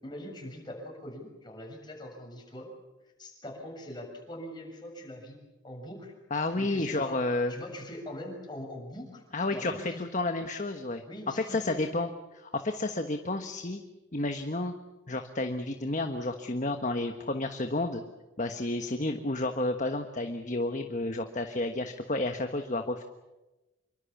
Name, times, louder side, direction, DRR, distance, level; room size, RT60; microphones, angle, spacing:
voice 1, 0.0-2.7 3.2-5.4 5.6-6.1 6.6-7.2 7.5-10.0 11.1-11.8, left 1 dB, 20° left, 1 dB, 7.0 m, -42 dB
voice 2, 6.3-7.5 9.3-11.0 11.3-13.8 14.1-14.7 15.1-18.0 18.4-23.0, left 2 dB, 40° left, 6 dB, 1.3 m, -31 dB
27.0 x 24.0 x 7.2 m, 1.1 s
head